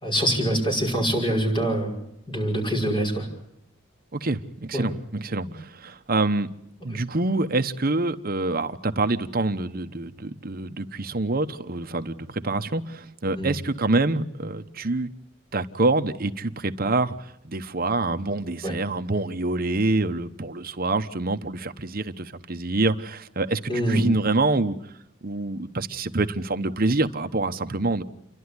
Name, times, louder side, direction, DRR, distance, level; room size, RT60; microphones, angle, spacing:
voice 1, 0.0-1.9 2.3-3.3 4.7-4.9 13.4-13.5 18.6-18.8 23.7-24.1, right 1 dB, 25° left, 0 dB, 5.6 m, -24 dB
voice 2, 4.1-6.5 6.8-15.1 15.5-17.1 17.4-23.6 23.9-24.8 25.2-28.0, right 2 dB, 45° right, 8 dB, 1.0 m, -26 dB
29.5 x 12.0 x 9.7 m, 0.80 s
head